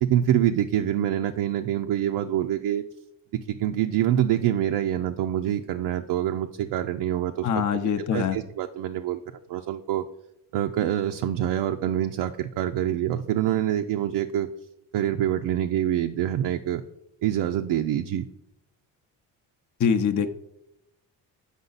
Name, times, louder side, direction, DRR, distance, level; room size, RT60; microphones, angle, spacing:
voice 1, 0.0-2.8 3.5-7.8 8.1-9.2 9.5-10.0 10.5-14.5 14.9-16.8 17.2-18.3, right 11 dB, 65° right, 5 dB, 0.5 m, -25 dB
voice 2, 7.4-8.4 19.8-20.3, left 7 dB, 40° left, 8 dB, 0.7 m, -23 dB
8.1 x 5.0 x 4.0 m, 0.85 s
supercardioid pair, 65°, 44 cm